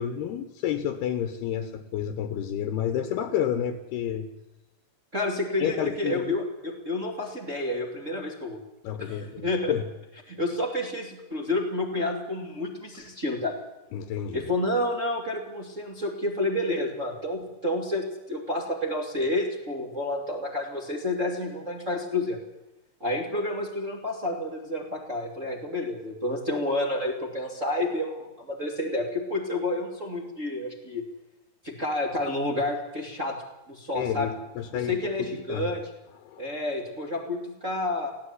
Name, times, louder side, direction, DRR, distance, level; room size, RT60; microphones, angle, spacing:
voice 1, 0.0-4.3 5.6-6.3 8.8-9.8 13.9-14.5 33.9-35.7 36.2-36.5, left 9 dB, 70° left, 9 dB, 3.2 m, -30 dB
voice 2, 5.1-8.6 9.0-9.7 10.3-13.5 14.3-22.4 23.0-31.0 31.6-33.4 33.7-34.3 34.7-35.8 36.4-38.1, left 1 dB, 20° right, 1 dB, 2.3 m, -29 dB
19.5 x 16.0 x 9.9 m, 1.0 s
omnidirectional pair, 5.0 m